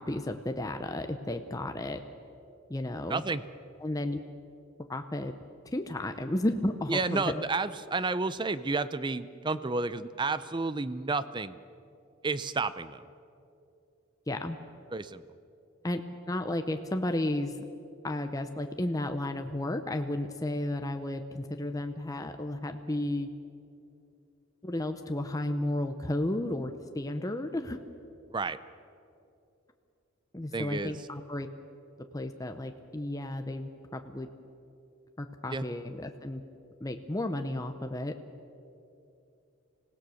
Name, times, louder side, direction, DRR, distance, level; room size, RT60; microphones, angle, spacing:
voice 1, 0.0-2.0 2.7-3.2 3.8-4.2 4.9-5.3 5.7-7.4 14.3-14.6 15.8-16.0 16.3-17.5 18.0-23.3 24.6-27.8 30.3-31.5 32.1-34.3 35.2-36.4 36.8-38.1, left 1 dB, 15° left, 6 dB, 0.7 m, -33 dB
voice 2, 3.1-3.4 6.9-11.6 12.2-13.0 14.9-15.2 28.3-28.6 30.5-31.0 35.5-35.6, right 3 dB, 20° right, 14 dB, 0.5 m, -31 dB
26.0 x 17.0 x 6.4 m, 2.7 s
head